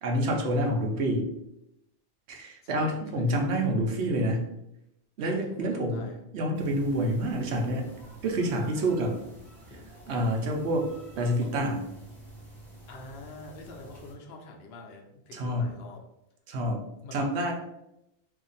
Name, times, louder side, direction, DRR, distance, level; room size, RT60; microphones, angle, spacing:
voice 1, 0.0-1.3 2.3-4.5 5.2-6.1 6.3-7.9 8.2-9.2 10.1-10.9 11.2-11.9 15.3-15.7 16.5-16.8 17.1-17.5, right 1 dB, 85° right, 2 dB, 1.0 m, -27 dB
voice 2, 2.6-3.5 5.2-6.2 12.9-16.0 17.0-17.5, left 2 dB, 70° left, 2 dB, 0.8 m, -46 dB
sound 1, 6.5-14.2, right 3 dB, ahead, 0.8 m, -47 dB
2.8 x 2.5 x 3.9 m, 0.85 s
omnidirectional pair, 1.1 m